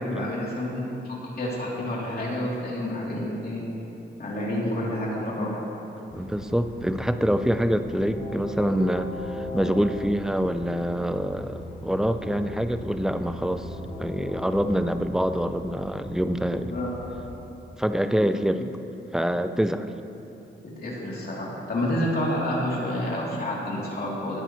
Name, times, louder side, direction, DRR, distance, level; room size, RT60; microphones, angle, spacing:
voice 1, 0.0-3.6 4.2-5.6 16.6-16.9 20.8-24.4, left 1 dB, 50° left, -5 dB, 3.1 m, -29 dB
Train, 6.1-17.3, left 1 dB, 65° left, 2.8 m, -38 dB
voice 2, 6.1-13.7 14.0-16.7 17.8-18.7 19.1-19.9, equal, 5° right, 9 dB, 0.5 m, -25 dB
17.5 x 12.0 x 3.1 m, 3.0 s
wide cardioid pair, 110°, 20 cm